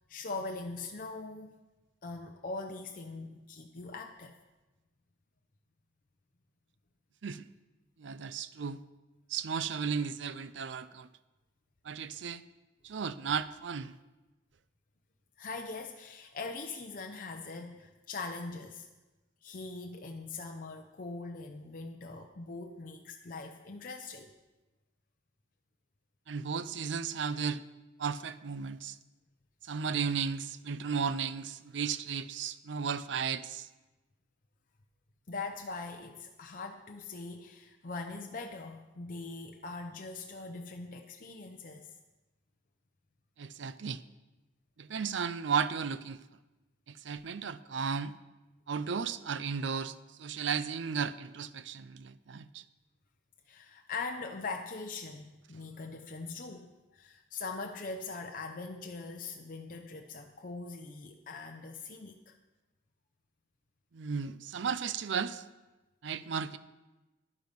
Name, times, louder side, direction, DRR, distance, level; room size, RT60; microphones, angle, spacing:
voice 1, 0.1-1.5 2.0-4.3 15.4-18.9 19.4-24.3 35.3-41.9 53.5-62.4, left 3 dB, 45° left, 3 dB, 0.7 m, -42 dB
voice 2, 8.0-8.8 9.3-11.1 11.8-12.4 12.8-13.9 26.3-27.6 28.0-29.0 29.6-33.7 43.4-44.0 44.8-46.2 46.9-48.1 48.7-52.6 63.9-65.4 66.0-66.6, right 6 dB, 75° right, 15 dB, 0.5 m, -34 dB
11.0 x 9.3 x 5.3 m, 1.1 s
head